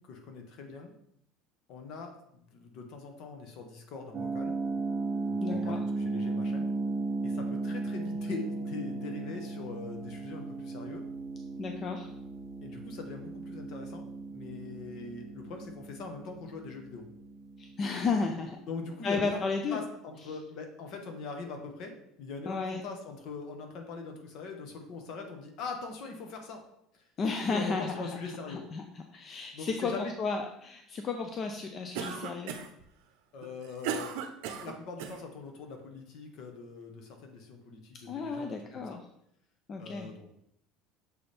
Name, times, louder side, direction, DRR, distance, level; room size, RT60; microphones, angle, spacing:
voice 1, 0.1-0.9 1.7-4.5 5.3-6.7 7.2-11.0 12.6-17.0 18.7-19.4 19.7-26.6 26.9-27.0 27.5-28.6 29.5-30.1 33.3-34.1 34.5-39.0 39.8-40.3, left 4 dB, 55° left, 4 dB, 1.1 m, -42 dB
sound 1, 4.1-18.9, right 3 dB, 25° right, 0.5 m, -36 dB
voice 2, 5.4-5.8 11.6-12.1 17.6-18.6 19.0-19.8 22.5-22.8 27.2-32.5 38.1-39.0 39.7-40.1, left 4 dB, 30° left, 4 dB, 0.5 m, -33 dB
Cough, 32.0-32.8 33.4-35.2, right 7 dB, 75° right, 0.6 m, -36 dB
6.7 x 4.2 x 3.3 m, 0.76 s
cardioid pair, 150°, 0 cm